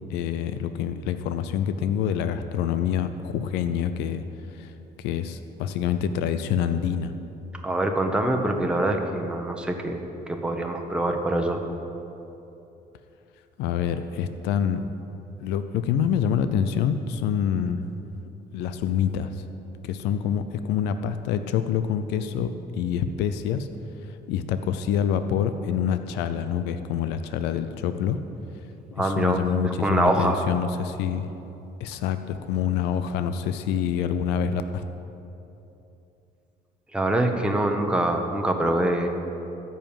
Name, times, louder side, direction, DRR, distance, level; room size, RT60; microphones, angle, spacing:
voice 1, 0.1-7.1 13.6-14.9 15.4-17.9 18.5-19.4 19.8-23.7 24.0-28.2 29.0-31.3 31.8-34.9, left 8 dB, 90° left, 10 dB, 0.6 m, -26 dB
voice 2, 7.6-11.6 29.0-30.4 36.9-39.1, right 1 dB, 5° right, 3 dB, 1.1 m, -24 dB
13.5 x 5.6 x 9.0 m, 2.9 s
cardioid pair, 110°, 17 cm